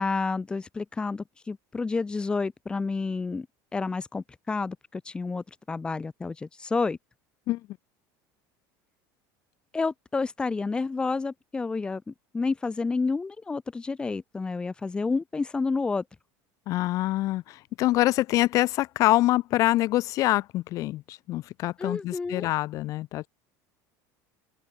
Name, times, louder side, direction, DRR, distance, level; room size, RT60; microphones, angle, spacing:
voice 1, 0.0-3.5 3.7-7.0 9.7-16.0 21.8-22.5, left 4 dB, 10° left, 4.9 m, -30 dB
voice 2, 16.7-23.3, left 16 dB, 40° left, 6.0 m, -25 dB
open air
cardioid pair, 180°, 9 cm